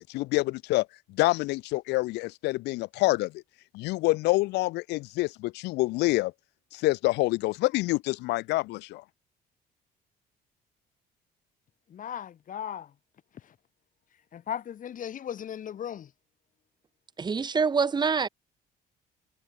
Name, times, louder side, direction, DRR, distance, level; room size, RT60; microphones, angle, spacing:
voice 1, 0.0-3.3 3.7-6.3 6.7-9.0, left 20 dB, 90° left, 2.4 m, -27 dB
voice 2, 11.9-12.9 13.4-13.5 14.3-16.1, left 9 dB, 50° left, 5.7 m, -37 dB
voice 3, 17.2-18.3, right 5 dB, 25° right, 1.5 m, -25 dB
cardioid pair, 110°, 17 cm